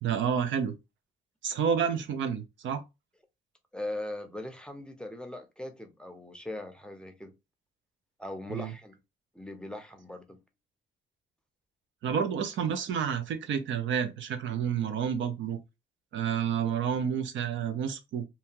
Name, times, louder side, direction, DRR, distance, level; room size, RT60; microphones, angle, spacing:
voice 1, 0.0-0.7 1.4-2.8 8.5-8.7 12.0-15.6 16.1-18.2, right 7 dB, 70° right, 0.6 m, -29 dB
voice 2, 3.7-7.3 8.2-9.0 9.3-10.4, left 1 dB, 5° left, 0.6 m, -40 dB
2.8 x 2.3 x 2.7 m
cardioid pair, 90°, 20 cm